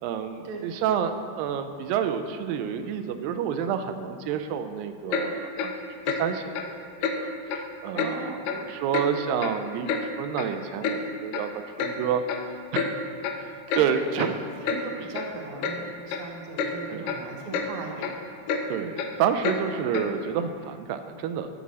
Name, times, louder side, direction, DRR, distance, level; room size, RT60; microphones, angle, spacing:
voice 1, 0.0-5.7 6.2-6.9 7.2-11.5 11.8-12.2 12.7-13.1 13.4-13.5 13.8-14.4 15.8-15.9 16.9-17.1 18.7-21.5, right 8 dB, 90° right, 9 dB, 2.3 m, -29 dB
Clock, 5.1-5.3 5.6-5.7 6.1-6.2 6.5-6.7 7.0-7.2 7.5-7.6 8.0-8.1 8.5-8.6 8.9-9.1 9.4-10.0 10.4-10.5 10.8-11.0 11.3-11.5 11.8-11.9 12.3-12.4 12.7-12.9 13.2-13.4 13.7-13.9 14.2-14.3 14.6-14.8 15.1-15.3 15.6-15.8 16.1-16.3 16.6-16.7 17.1-17.2 17.5-17.7 18.0-18.1 18.5-18.6 19.0-19.1 19.4-19.6 19.9-20.1, left 6 dB, 80° left, 2.3 m, -28 dB
voice 2, 7.9-8.4 13.7-14.3 14.6-18.2, right 4 dB, 70° right, 1 dB, 1.4 m, -38 dB
16.0 x 6.1 x 4.1 m, 2.2 s
omnidirectional pair, 4.0 m